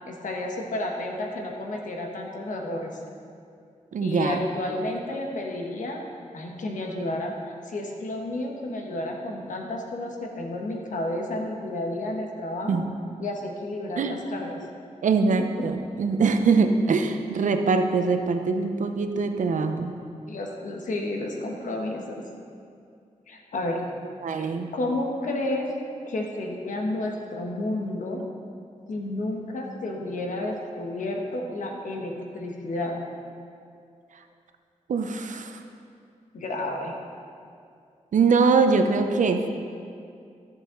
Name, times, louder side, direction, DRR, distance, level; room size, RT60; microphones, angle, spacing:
voice 1, 0.1-3.0 4.0-6.0 6.3-7.3 7.7-12.8 13.2-14.6 20.3-22.2 23.3-23.9 24.4-24.5 24.7-25.7 26.1-28.2 28.9-33.0 36.3-36.9, left 1 dB, 85° left, 1 dB, 1.2 m, -31 dB
voice 2, 3.9-4.4 12.7-12.8 14.0-14.2 15.0-20.0 24.2-24.7 34.9-35.6 38.1-39.5, right 4 dB, 80° right, 6 dB, 0.7 m, -23 dB
13.5 x 7.3 x 3.8 m, 2.4 s
wide cardioid pair, 120°, 13 cm